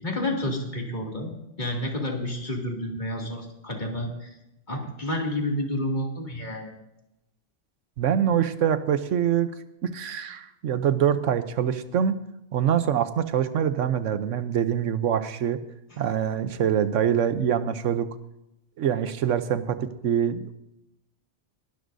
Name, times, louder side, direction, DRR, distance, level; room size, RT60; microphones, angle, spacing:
voice 1, 0.0-4.3 4.7-6.7, left 1 dB, 40° left, 0 dB, 2.6 m, -30 dB
voice 2, 8.0-9.5 9.8-12.2 12.5-15.6 16.0-18.1 18.8-20.5, right 9 dB, 85° right, 11 dB, 1.1 m, -24 dB
21.5 x 12.5 x 2.7 m, 0.85 s
omnidirectional pair, 1.3 m